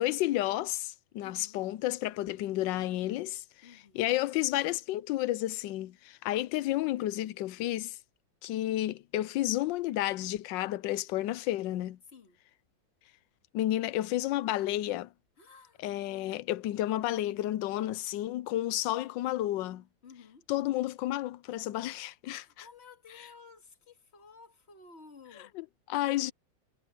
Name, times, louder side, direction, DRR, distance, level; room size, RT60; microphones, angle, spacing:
voice 1, 0.0-3.4 3.9-8.0 8.4-12.0 13.5-15.1 15.8-19.8 20.5-22.6 25.6-26.3, left 14 dB, 80° left, 1.3 m, -31 dB
voice 2, 1.2-1.6 3.6-4.1 12.1-12.4 15.4-15.8 20.0-20.5 22.3-25.6, left 4 dB, 35° left, 2.3 m, -54 dB
omnidirectional pair, 2.1 m